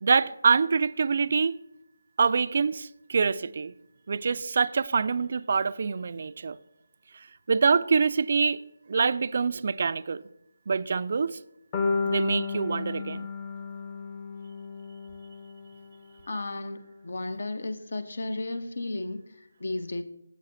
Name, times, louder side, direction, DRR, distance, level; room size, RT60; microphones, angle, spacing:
voice 1, 0.0-1.6 2.2-3.7 4.1-6.6 7.5-8.6 8.9-10.2 10.7-11.4 12.0-13.3, right 5 dB, 45° right, 0.4 m, -25 dB
sound 1, 11.7-15.8, left 4 dB, 25° left, 0.8 m, -32 dB
voice 2, 16.3-20.0, left 2 dB, 60° left, 1.0 m, -34 dB
11.0 x 7.9 x 4.0 m
figure-of-eight pair, 160°, 0 cm